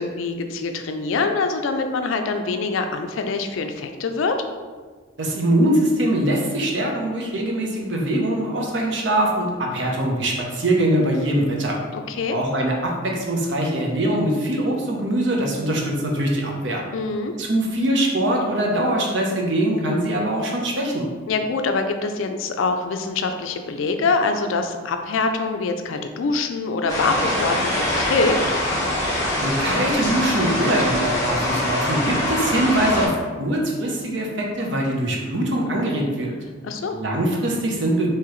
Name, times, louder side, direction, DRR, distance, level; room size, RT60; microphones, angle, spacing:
voice 1, 0.0-4.4 11.9-12.4 16.9-17.3 21.3-28.4 36.6-37.0, left 4 dB, 90° left, 6 dB, 0.4 m, -24 dB
voice 2, 5.2-11.8 12.3-16.8 17.4-21.1 29.4-36.3 36.9-38.1, right 1 dB, 65° right, 0 dB, 0.8 m, -22 dB
sound 1, 26.9-33.1, left 1 dB, 15° left, 1.2 m, -23 dB
4.7 x 3.0 x 3.0 m, 1.5 s
head